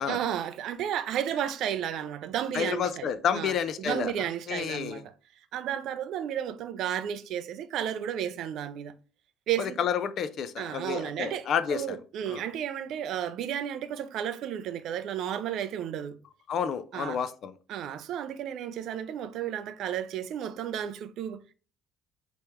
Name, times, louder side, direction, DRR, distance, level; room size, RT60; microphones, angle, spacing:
voice 1, 0.0-5.1 5.5-8.9 9.5-9.8 10.6-16.2 16.9-17.2 17.7-21.5, right 10 dB, 55° right, 0.4 m, -33 dB
voice 2, 2.5-4.1 4.5-5.0 9.6-12.0 12.3-12.4 16.5-17.5, left 7 dB, 40° left, 0.3 m, -30 dB
3.0 x 2.9 x 3.4 m
cardioid pair, 155°, 0 cm